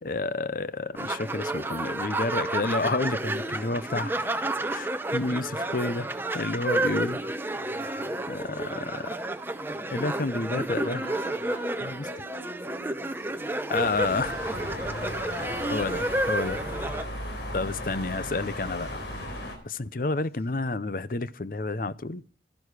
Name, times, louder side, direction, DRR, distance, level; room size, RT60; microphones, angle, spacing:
voice 1, 0.0-4.3 4.7-6.1 6.3-7.2 8.3-9.1 9.9-11.0 11.8-12.0 13.7-14.5 15.4-16.6 17.5-18.9 19.6-22.2, left 3 dB, 50° left, 0.6 m, -30 dB
sound 1, 1.0-17.0, right 2 dB, 10° right, 0.7 m, -31 dB
voice 2, 10.8-13.3, left 1 dB, 35° left, 4.6 m, -43 dB
sound 2, 13.8-19.6, left 1 dB, 80° left, 3.8 m, -36 dB
12.5 x 11.5 x 4.8 m
head